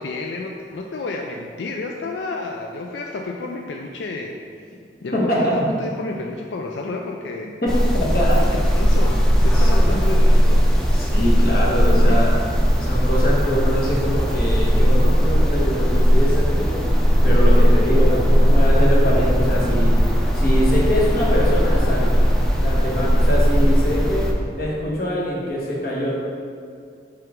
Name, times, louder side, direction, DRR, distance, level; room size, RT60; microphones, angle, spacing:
voice 1, 0.0-4.4 5.0-7.6 8.4-10.7 12.1-12.3, left 3 dB, 85° left, 1 dB, 0.4 m, -31 dB
voice 2, 5.1-5.5 7.9-8.4 9.5-10.0 10.9-12.4 12.8-16.8 17.2-20.0 20.3-22.2 22.6-24.2 24.6-26.1, equal, 55° left, -4 dB, 1.3 m, -23 dB
sound 1, 7.7-24.3, equal, 5° left, 0.5 m, -17 dB
5.6 x 5.1 x 3.6 m, 2.3 s
head